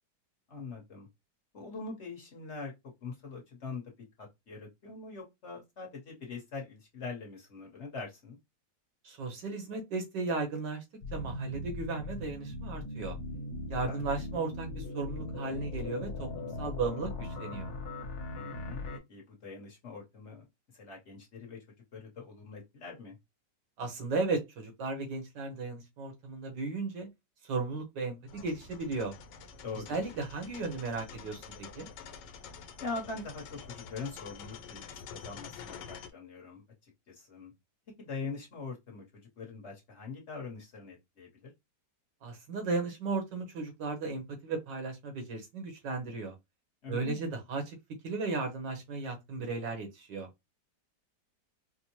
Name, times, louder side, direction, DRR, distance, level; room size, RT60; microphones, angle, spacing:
voice 1, 0.5-1.1 1.5-2.7 3.0-3.8 4.2-8.4 13.8-14.0 18.3-18.8 19.1-20.4 20.7-21.6 21.9-23.2 29.6-30.0 32.8-37.5 38.0-41.5 46.8-47.3, left 4 dB, 45° left, 1.2 m, -43 dB
voice 2, 9.0-10.8 11.1-13.2 13.7-17.7 23.8-27.1 27.4-29.1 29.9-31.9 42.2-46.3 46.9-47.8 48.0-50.3, right 3 dB, 85° right, 1.7 m, -35 dB
sound 1, 11.0-19.0, left 2 dB, 65° left, 1.3 m, -39 dB
sound 2, 28.3-36.1, left 6 dB, 85° left, 1.3 m, -48 dB
4.4 x 2.1 x 2.9 m
omnidirectional pair, 1.8 m